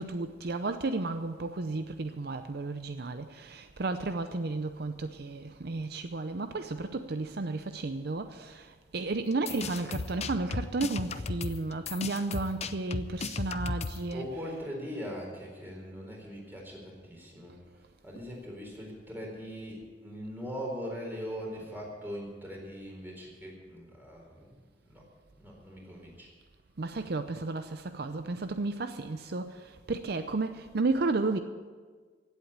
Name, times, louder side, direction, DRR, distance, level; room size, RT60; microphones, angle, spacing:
voice 1, 0.0-14.6 26.8-31.4, right 3 dB, 60° right, 0.6 m, -33 dB
sound 1, 9.3-14.1, left 3 dB, 40° left, 0.6 m, -35 dB
voice 2, 14.1-24.5 24.9-25.1 25.4-26.3, equal, 10° right, 4.1 m, -41 dB
16.5 x 8.1 x 8.7 m
head